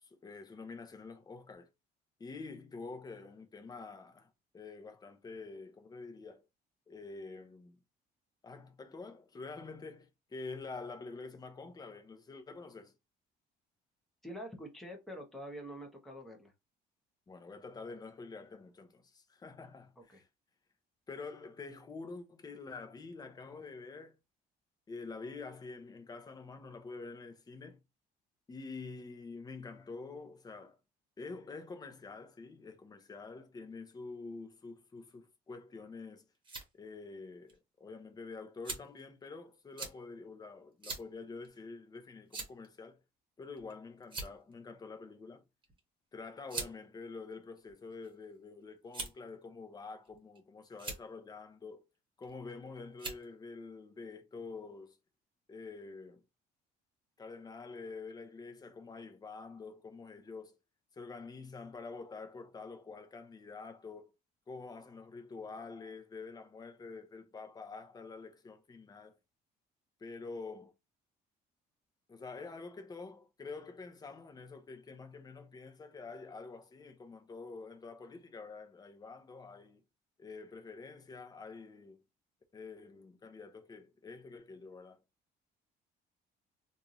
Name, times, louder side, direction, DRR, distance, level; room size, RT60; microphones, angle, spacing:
voice 1, 0.0-1.7 2.2-6.4 6.9-7.8 8.4-12.9 17.3-20.2 21.1-24.2 24.9-27.8 28.5-30.8 31.2-36.2 36.7-43.0 43.4-45.4 46.1-51.8 52.2-55.0 55.5-56.2 57.2-60.5 60.9-64.1 64.5-69.2 70.0-70.7 72.1-79.8 80.2-82.0 82.5-85.0, left 4 dB, 25° left, 0.8 m, -47 dB
voice 2, 14.2-16.5 20.0-20.2, equal, ahead, 1.2 m, -46 dB
sound 1, 36.1-36.7 37.5-37.6 38.6-39.0 39.8-40.0 40.8-41.1 41.4-41.6 42.3-42.7 43.6-43.7 44.0-44.5 45.6-45.8 46.5-46.7 47.6-48.1 48.9-49.3 50.0-50.4 50.7-51.0 52.2-52.5 53.0-53.2, right 3 dB, 30° right, 1.4 m, -41 dB
3.5 x 2.7 x 3.0 m
cardioid pair, 110°, 17 cm